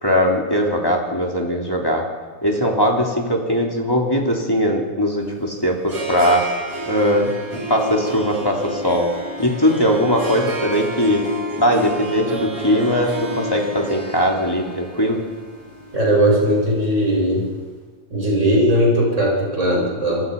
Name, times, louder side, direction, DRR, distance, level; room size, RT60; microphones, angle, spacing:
voice 1, 0.0-2.0 2.4-6.4 6.9-7.3 7.7-9.1 9.4-11.2 11.5-15.2, equal, 5° left, -1 dB, 3.1 m, -20 dB
Harp, 5.2-17.4, right 2 dB, 45° right, 8.4 m, -30 dB
voice 2, 15.9-17.5 18.1-20.2, equal, 20° right, -2 dB, 8.1 m, -18 dB
27.0 x 23.0 x 5.6 m, 1.4 s
omnidirectional pair, 4.2 m